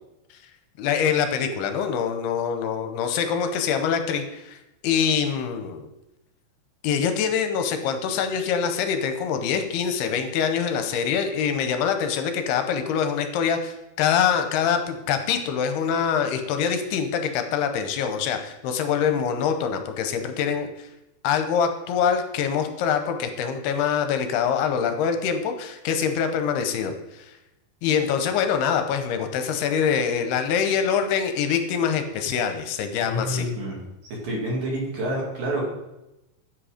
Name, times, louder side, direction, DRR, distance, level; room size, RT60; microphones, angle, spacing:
voice 1, 0.8-4.6 4.8-5.9 6.8-20.9 21.2-27.3 27.8-33.5, left 7 dB, 80° left, 7 dB, 2.7 m, -24 dB
voice 2, 33.0-35.6, equal, 60° right, -2 dB, 3.7 m, -28 dB
9.1 x 7.5 x 5.0 m, 0.93 s
omnidirectional pair, 4.8 m